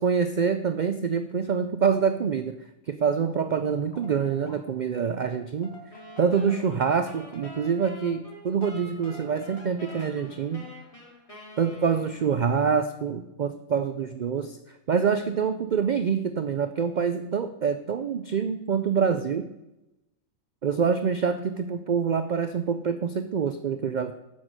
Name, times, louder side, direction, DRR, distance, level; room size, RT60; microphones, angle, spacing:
voice 1, 0.0-2.6 2.9-5.7 6.2-10.7 11.6-14.6 14.9-19.5 20.6-24.1, right 6 dB, 80° right, 9 dB, 0.4 m, -26 dB
sound 1, 3.9-4.9 5.2-11.3, right 1 dB, 50° left, 1.6 m, -50 dB
sound 2, 5.9-12.5, left 1 dB, 25° left, 2.2 m, -47 dB
7.5 x 6.3 x 7.5 m, 0.95 s
omnidirectional pair, 1.4 m